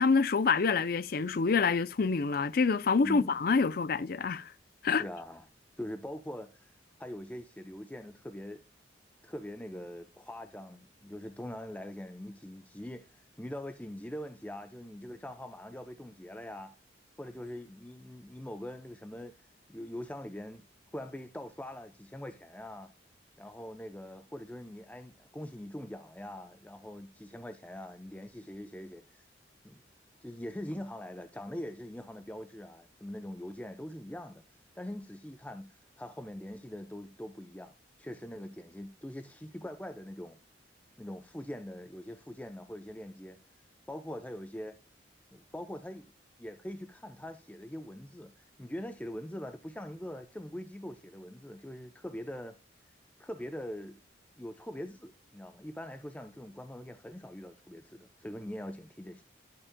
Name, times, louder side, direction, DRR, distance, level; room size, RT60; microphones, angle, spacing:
voice 1, 0.0-4.5 4.8-5.0, left 4 dB, 50° left, 0.5 m, -27 dB
voice 2, 3.0-3.4 5.0-5.5 5.8-6.7 7.0-8.6 9.2-16.7 17.2-19.3 19.7-20.7 20.9-22.9 23.4-29.3 29.6-29.8 30.2-34.4 34.8-37.7 38.0-40.4 41.0-43.4 43.9-44.8 45.3-46.1 46.4-52.6 53.2-54.0 54.4-59.2, left 1 dB, 10° left, 0.6 m, -43 dB
11.5 x 8.6 x 2.2 m
head